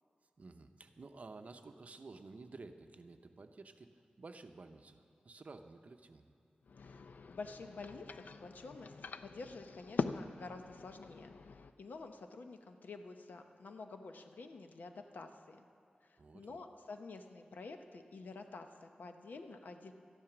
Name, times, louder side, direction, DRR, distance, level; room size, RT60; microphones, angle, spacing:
voice 1, 0.4-3.9 4.2-6.3 16.2-16.6, right 3 dB, 55° right, 7 dB, 0.7 m, -53 dB
sound 1, 6.6-11.7, left 4 dB, 75° left, 0.4 m, -43 dB
voice 2, 6.8-15.6 16.0-19.9, left 3 dB, 90° left, 6 dB, 0.8 m, -50 dB
13.0 x 10.5 x 6.0 m, 2.4 s
wide cardioid pair, 100°, 3 cm